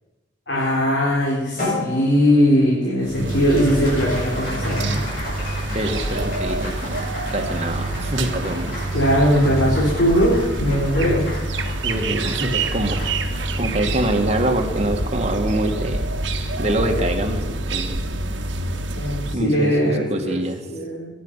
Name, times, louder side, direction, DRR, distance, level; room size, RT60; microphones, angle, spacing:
voice 1, 0.5-5.1 8.9-11.3 18.9-20.4 20.7-21.1, equal, 70° left, -5 dB, 4.3 m, -20 dB
Applause, 1.6-16.2, left 1 dB, 45° left, 7.7 m, -34 dB
sound 1, 3.0-19.4, right 2 dB, 70° right, 1.5 m, -26 dB
voice 2, 5.7-7.0 7.3-8.7 11.8-13.1 13.6-16.0 16.6-18.0 19.3-20.7, right 1 dB, 35° right, 3 dB, 1.9 m, -25 dB
23.5 x 10.5 x 5.6 m, 1.1 s
head